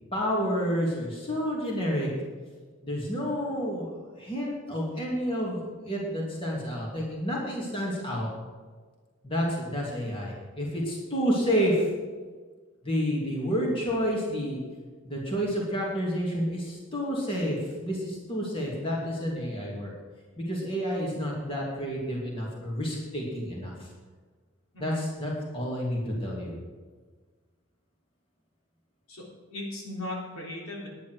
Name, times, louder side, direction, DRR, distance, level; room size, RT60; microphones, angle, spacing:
voice 1, 0.1-2.1 2.8-3.9 4.2-8.3 9.2-11.9 12.8-14.6 15.0-19.9 20.4-23.9 24.8-26.5, equal, 25° left, -4 dB, 2.6 m, -29 dB
voice 2, 29.1-30.9, left 1 dB, 85° left, -2 dB, 3.6 m, -38 dB
10.5 x 10.0 x 6.3 m, 1.5 s
head